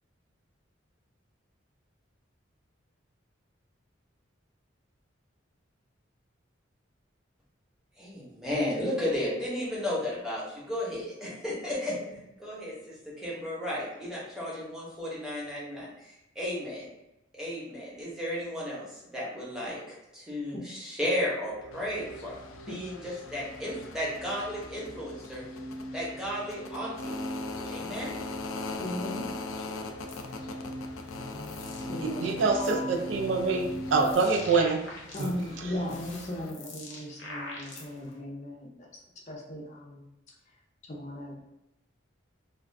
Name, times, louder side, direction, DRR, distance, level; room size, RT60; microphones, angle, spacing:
voice 1, 8.0-11.9 12.4-16.9 17.3-22.3 22.7-23.0 23.3-25.4 25.9-27.2 27.7-28.1, left 1 dB, 5° right, -7 dB, 0.8 m, -34 dB
sound 1, 21.5-34.1, equal, 35° right, 0.8 m, -41 dB
sound 2, 21.7-36.5, left 3 dB, 85° left, 0.4 m, -42 dB
voice 2, 28.8-29.3 31.9-32.6 35.1-40.1 40.5-40.6 40.9-41.4, left 1 dB, 35° left, -2 dB, 0.5 m, -37 dB
sound 3, 30.1-30.3 31.0-31.9 32.2-32.9 33.5-35.5 35.8-38.1, left 2 dB, 70° left, 0.7 m, -44 dB
voice 3, 32.0-33.7 33.9-34.8, right 4 dB, 70° right, 3 dB, 0.4 m, -25 dB
2.4 x 2.3 x 3.2 m, 0.91 s
head